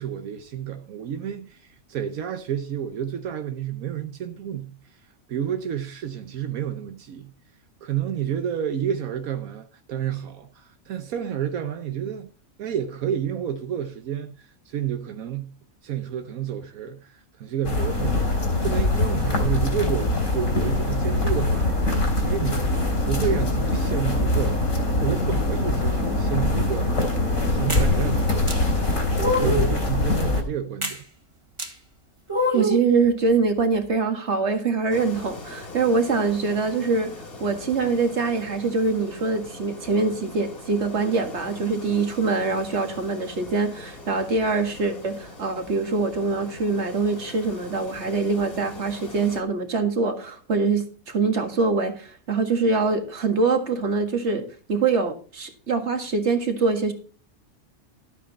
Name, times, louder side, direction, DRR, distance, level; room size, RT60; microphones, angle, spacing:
voice 1, 0.0-7.3 7.8-12.3 12.6-15.5 15.8-21.7 22.1-22.7 23.0-28.8 29.2-31.0, right 9 dB, 80° right, 1.3 m, -30 dB
sound 1, 17.6-30.4, left 2 dB, 75° left, 3.6 m, -23 dB
sound 2, 27.7-27.9 28.5-28.6 29.2-29.7 30.8-31.0 31.6-31.7 32.3-32.9, left 1 dB, 20° right, 1.9 m, -24 dB
voice 2, 32.5-37.1 37.4-54.4 54.7-56.9, right 4 dB, 50° right, 2.1 m, -24 dB
sound 3, 34.9-49.4, left 2 dB, 40° left, 2.3 m, -42 dB
12.5 x 8.6 x 4.2 m
omnidirectional pair, 1.5 m